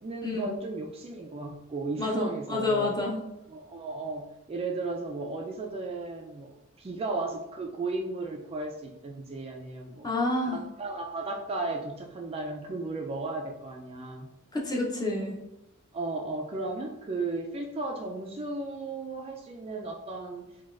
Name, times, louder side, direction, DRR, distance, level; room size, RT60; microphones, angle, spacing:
voice 1, 0.0-3.0 3.5-6.5 6.8-10.1 10.4-14.3 15.9-20.4, right 3 dB, 25° right, 0 dB, 0.3 m, -35 dB
voice 2, 2.0-3.2 10.0-10.6 14.5-15.4, left 2 dB, 20° left, -2 dB, 0.6 m, -28 dB
3.9 x 2.3 x 2.4 m, 0.90 s
head